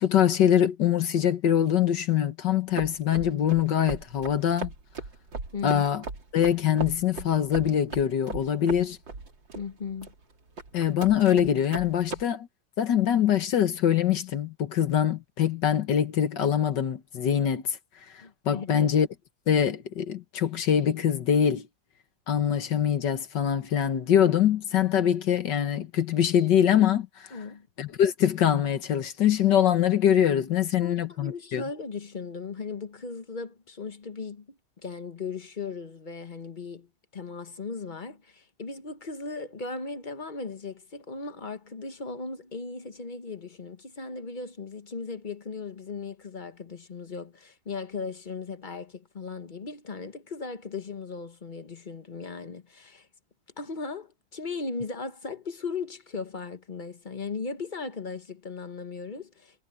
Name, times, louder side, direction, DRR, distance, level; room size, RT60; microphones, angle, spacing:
voice 1, 0.0-4.7 5.6-6.0 6.3-9.0 10.7-12.5 12.8-17.8 18.5-19.1 19.5-21.7 22.3-27.3 27.8-31.6, left 9 dB, 70° left, 1.8 m, -23 dB
sound 1, 2.8-12.2, right 3 dB, 80° right, 4.0 m, -38 dB
voice 2, 5.5-5.8 9.5-10.1 18.2-18.9 27.3-27.7 30.8-53.1 53.6-59.6, left 4 dB, 35° left, 0.9 m, -37 dB
omnidirectional pair, 2.0 m